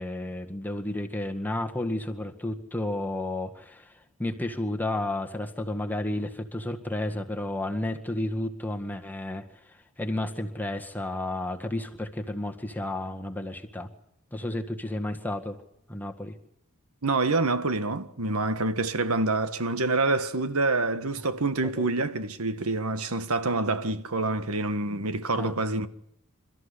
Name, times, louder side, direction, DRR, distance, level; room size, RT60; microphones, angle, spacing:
voice 1, 0.0-3.9 4.2-9.4 10.0-13.9 14.3-15.6 15.9-16.4 25.4-25.5, left 1 dB, 10° left, 1.8 m, -32 dB
voice 2, 17.0-25.9, right 2 dB, 80° right, 1.6 m, -27 dB
28.5 x 14.0 x 9.9 m
head